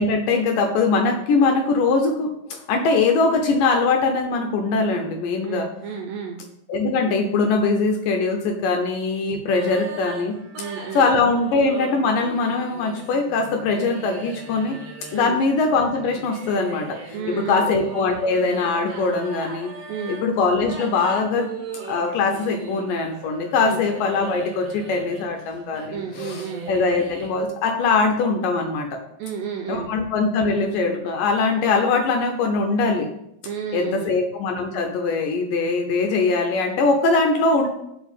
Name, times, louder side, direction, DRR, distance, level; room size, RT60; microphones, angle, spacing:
voice 1, 0.0-5.7 6.7-10.4 10.9-14.8 15.1-17.2 17.5-19.7 20.1-21.5 21.8-29.0 29.7-33.1 33.7-37.7, left 4 dB, 75° left, 4 dB, 2.1 m, -22 dB
voice 2, 5.4-6.4 10.6-11.1 15.1-15.4 17.1-17.7 19.9-20.2 23.6-23.8 25.9-26.7 29.2-29.9 33.4-34.2, right 6 dB, 80° right, 3 dB, 2.0 m, -31 dB
sound 1, 9.5-27.4, right 4 dB, 60° right, 2.8 m, -38 dB
7.1 x 5.1 x 7.1 m, 0.80 s
omnidirectional pair, 4.6 m